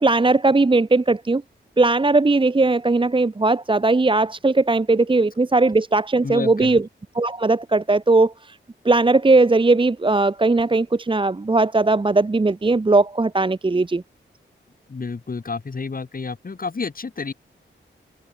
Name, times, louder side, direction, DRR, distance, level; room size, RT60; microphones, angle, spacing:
voice 1, 0.0-1.4 1.8-6.9 7.1-8.6 8.8-14.0, right 3 dB, 25° right, 0.9 m, -18 dB
voice 2, 6.2-6.8 14.9-17.3, left 4 dB, 45° left, 2.5 m, -30 dB
cardioid pair, 65°, 21 cm